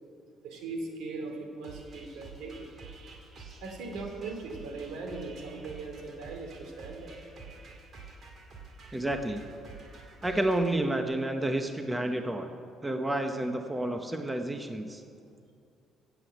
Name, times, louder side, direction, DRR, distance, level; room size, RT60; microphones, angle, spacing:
voice 1, 0.4-2.7 3.5-7.2, right 3 dB, 85° right, 3 dB, 2.7 m, -39 dB
sound 1, 1.6-10.7, right 3 dB, 45° right, 2.3 m, -49 dB
voice 2, 8.9-9.5 10.2-12.5 12.8-15.0, right 1 dB, 10° right, 6 dB, 0.8 m, -30 dB
15.0 x 8.0 x 8.0 m, 2.4 s
cardioid pair, 130°, 0 cm